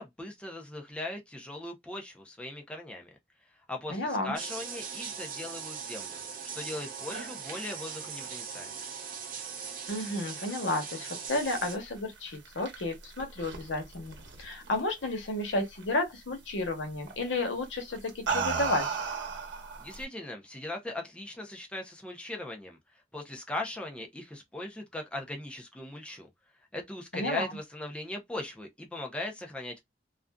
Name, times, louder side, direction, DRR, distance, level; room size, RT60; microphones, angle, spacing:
voice 1, 0.0-3.1 3.7-6.2 6.5-8.7 19.8-22.8 23.1-26.3 26.7-29.8, left 1 dB, 5° left, 0.5 m, -39 dB
voice 2, 3.9-4.3 9.9-18.9 27.1-27.5, left 2 dB, 90° left, 0.9 m, -32 dB
sound 1, 4.4-11.8, right 6 dB, 50° right, 0.6 m, -40 dB
sound 2, 12.2-15.1 15.4-15.8 17.1-17.3 17.9-20.0, right 5 dB, 80° right, 0.9 m, -34 dB
2.5 x 2.3 x 2.2 m
head